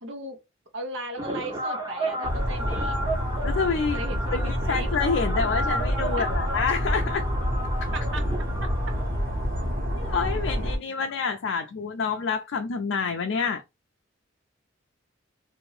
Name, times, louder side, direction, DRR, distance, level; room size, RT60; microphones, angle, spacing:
voice 1, 0.0-0.4 0.7-3.0 3.9-4.9 7.9-8.2, right 2 dB, 70° right, 0.9 m, -37 dB
sound 1, 1.2-9.7, right 1 dB, 20° right, 0.8 m, -33 dB
sound 2, 2.2-10.8, equal, 45° right, 1.3 m, -28 dB
voice 2, 3.4-7.3 7.8-7.9 9.9-13.6, left 5 dB, 70° left, 0.4 m, -28 dB
2.8 x 2.6 x 3.2 m
head